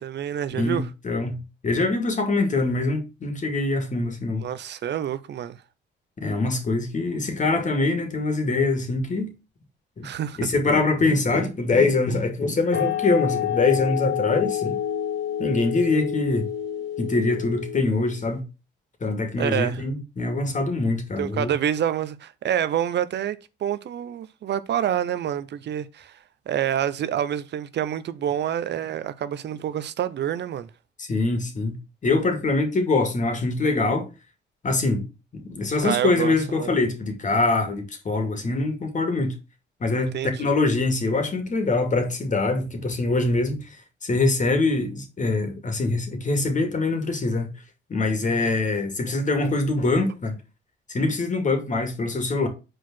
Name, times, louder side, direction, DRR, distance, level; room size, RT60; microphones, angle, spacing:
voice 1, 0.0-0.9 4.4-5.6 7.1-7.2 10.0-10.4 19.4-19.8 21.2-26.2 26.5-30.7 35.8-36.7 40.0-40.5, right 10 dB, 60° right, 0.7 m, -27 dB
voice 2, 0.5-4.5 6.2-9.3 10.0-10.1 10.4-14.8 15.4-16.5 17.0-18.4 19.0-21.5 31.0-31.8 32.0-34.1 34.6-35.1 35.3-39.3 39.8-43.6 44.0-47.5 47.9-50.4 50.9-52.5, left 3 dB, 40° left, 2.4 m, -24 dB
sound 1, 12.7-18.1, left 9 dB, 70° left, 2.8 m, -28 dB
6.4 x 4.7 x 6.1 m
cardioid pair, 90°, 20 cm